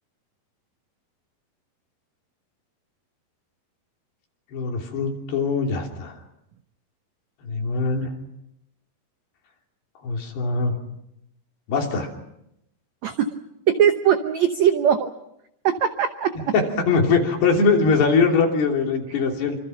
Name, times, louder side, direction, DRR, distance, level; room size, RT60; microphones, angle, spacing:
voice 1, 4.5-6.1 7.4-8.1 10.0-10.8 11.7-12.1 16.5-19.6, left 4 dB, 75° left, 1 dB, 5.2 m, -22 dB
voice 2, 13.7-15.1 15.6-16.8, right 8 dB, 80° right, 7 dB, 1.6 m, -21 dB
26.5 x 26.5 x 5.9 m, 0.81 s
omnidirectional pair, 4.7 m